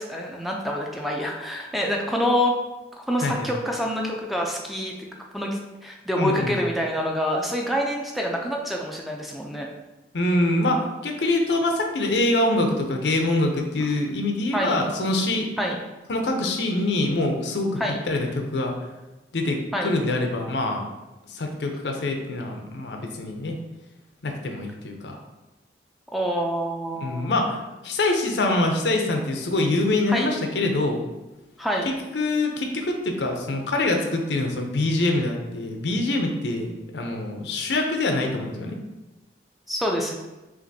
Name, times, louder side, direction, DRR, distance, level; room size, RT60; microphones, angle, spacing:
voice 1, 0.0-2.5 2.9-5.1 5.3-9.7 14.5-14.8 15.6-15.8 17.8-18.0 19.7-19.9 26.1-27.3 30.1-30.3 31.6-31.9 39.7-40.2, equal, ahead, 0 dB, 0.4 m, -26 dB
voice 2, 6.2-6.6 10.1-15.5 16.1-18.7 19.3-20.9 21.3-23.6 24.2-25.2 27.0-27.6 27.8-31.0 32.1-38.8, left 2 dB, 75° left, 3 dB, 0.6 m, -25 dB
5.7 x 2.5 x 2.7 m, 1.1 s
head